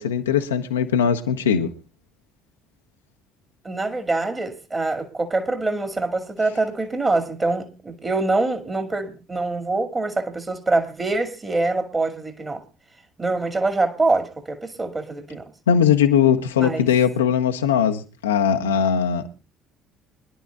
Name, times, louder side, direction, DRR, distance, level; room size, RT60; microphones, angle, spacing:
voice 1, 0.0-1.7 15.7-19.2, left 8 dB, 75° left, 0.9 m, -20 dB
voice 2, 3.6-12.6 13.2-15.4 16.6-16.9, right 2 dB, 20° right, 2.3 m, -24 dB
25.0 x 11.0 x 2.4 m
figure-of-eight pair, 55°, 0 cm